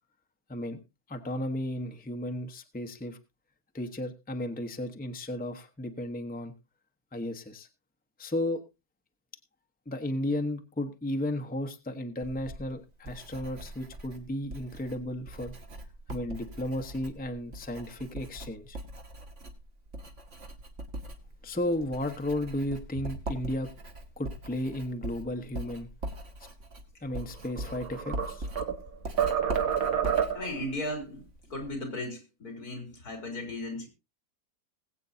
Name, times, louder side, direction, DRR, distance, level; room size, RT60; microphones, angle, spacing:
voice 1, 1.1-3.2 3.7-6.5 7.1-7.7 8.2-8.6 9.9-15.5 16.1-18.8 21.4-23.7 24.2-25.9 27.0-28.5, left 1 dB, 5° left, 6 dB, 0.9 m, -34 dB
Writing, 12.2-31.7, right 1 dB, 55° right, 1.8 m, -42 dB
sound 1, 27.4-28.8 29.2-30.6, right 8 dB, 70° right, 1.6 m, -28 dB
voice 2, 30.3-31.2 31.5-33.9, left 1 dB, 85° left, 4 dB, 3.5 m, -36 dB
20.5 x 8.3 x 2.7 m, 0.26 s
omnidirectional pair, 1.6 m